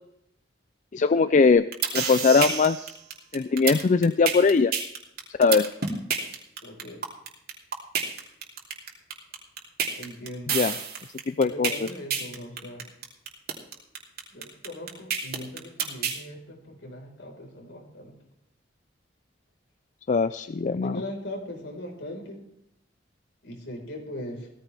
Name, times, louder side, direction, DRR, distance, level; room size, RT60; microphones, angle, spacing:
voice 1, 0.9-1.7 1.9-2.9 3.3-4.7 5.4-5.7 10.5-10.7 11.3-11.7 20.1-21.0, left 4 dB, 45° left, 13 dB, 0.4 m, -21 dB
sound 1, 1.5-16.2, right 6 dB, 60° right, 3.0 m, -28 dB
voice 2, 6.6-7.0 9.9-10.6 11.4-12.9 14.3-18.2 20.8-22.4 23.4-24.5, left 1 dB, 75° left, 1 dB, 4.6 m, -39 dB
17.0 x 14.5 x 3.5 m, 0.76 s
head